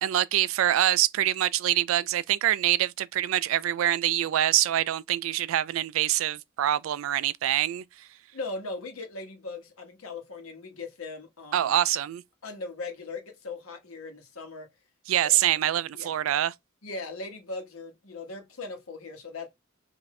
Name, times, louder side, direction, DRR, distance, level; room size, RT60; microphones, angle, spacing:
voice 1, 0.0-7.8 11.5-12.2 15.1-16.5, right 12 dB, 70° right, 0.3 m, -25 dB
voice 2, 8.3-11.8 12.4-14.7 15.2-15.4 15.9-16.2 16.8-19.5, left 3 dB, 85° left, 1.3 m, -39 dB
5.5 x 2.6 x 3.1 m
head